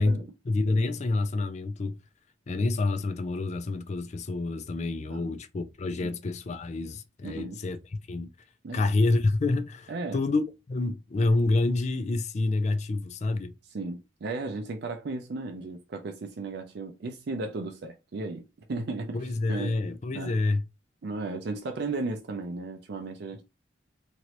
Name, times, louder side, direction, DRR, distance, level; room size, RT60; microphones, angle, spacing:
voice 1, 0.4-2.0 2.5-7.8 8.1-8.3 8.7-13.5 19.1-20.6, left 2 dB, 35° left, 0.4 m, -27 dB
voice 2, 7.2-7.6 8.6-8.9 9.9-10.2 13.7-18.4 18.7-19.2 19.5-19.8 20.1-20.4 21.0-23.4, right 3 dB, 60° right, 0.4 m, -35 dB
3.0 x 2.6 x 2.9 m
head